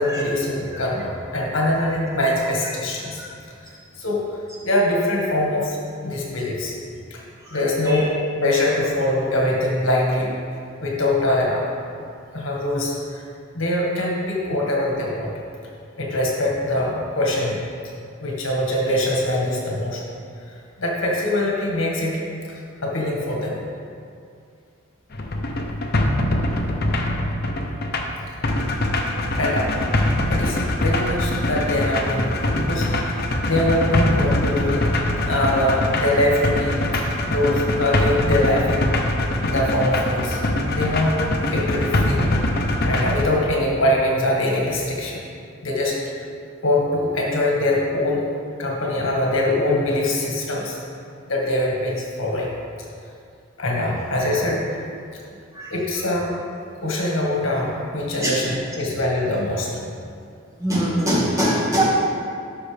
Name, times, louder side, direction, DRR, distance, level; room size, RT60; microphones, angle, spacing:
voice 1, 0.0-3.2 4.0-4.2 4.6-6.7 7.1-7.2 7.5-8.1 8.4-10.3 10.8-11.7 12.3-13.2 13.5-15.3 16.0-17.6 18.2-20.0 20.8-22.2 22.5-23.6 29.4-29.8 30.3-34.9 35.3-39.0 39.4-40.4 40.7-42.2 42.9-45.2 45.6-46.0 46.6-48.3 48.6-50.8 51.3-52.5 53.6-54.9 55.7-56.3 56.8-59.7, left 1 dB, 75° left, -2 dB, 1.7 m, -23 dB
sound 1, 25.1-43.2, left 1 dB, 50° left, 0.8 m, -23 dB
voice 2, 60.6-61.8, right 1 dB, 15° right, -7 dB, 1.8 m, -21 dB
12.5 x 6.1 x 3.4 m, 2.4 s
head